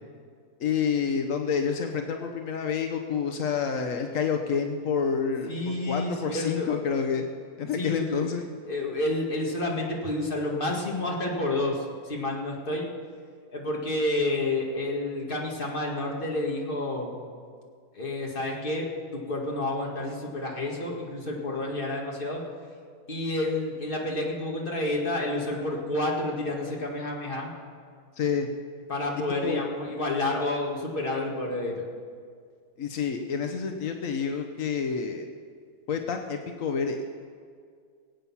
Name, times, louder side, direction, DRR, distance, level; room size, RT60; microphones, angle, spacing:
voice 1, 0.6-5.5 5.9-7.3 7.6-8.4 28.2-28.5 29.4-29.6 32.8-35.3 35.9-37.0, left 6 dB, 70° left, 4 dB, 0.7 m, -28 dB
voice 2, 5.5-6.7 7.7-12.9 13.5-17.1 17.9-22.4 23.1-27.5 28.9-31.8, left 2 dB, 25° left, -1 dB, 1.9 m, -30 dB
21.5 x 8.5 x 5.7 m, 2.1 s
omnidirectional pair, 2.4 m